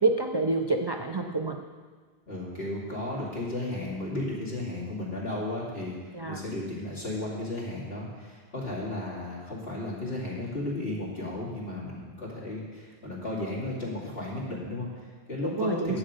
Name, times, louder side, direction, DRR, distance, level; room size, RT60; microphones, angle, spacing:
voice 1, 0.0-1.6 6.1-6.4 15.6-16.0, right 3 dB, 40° right, 4 dB, 0.3 m, -27 dB
voice 2, 2.3-16.0, left 1 dB, 65° left, -5 dB, 2.8 m, -34 dB
10.0 x 7.7 x 5.1 m, 1.5 s
omnidirectional pair, 1.1 m